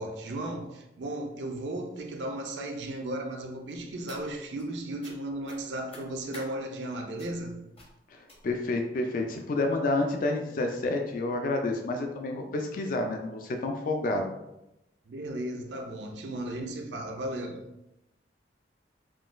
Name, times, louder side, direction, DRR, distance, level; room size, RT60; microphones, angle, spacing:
voice 1, 0.0-7.6 15.1-17.6, right 1 dB, 75° right, 0.4 m, -35 dB
sound 1, 3.7-4.7 5.0-5.2 5.4-6.5 7.2-7.4 7.7-7.9 8.3-8.7 9.4-9.5 9.9-10.0 10.3-10.4, left 2 dB, 35° left, 0.8 m, -49 dB
voice 2, 8.1-14.3, left 2 dB, 50° left, 0.3 m, -29 dB
3.6 x 2.3 x 2.4 m
head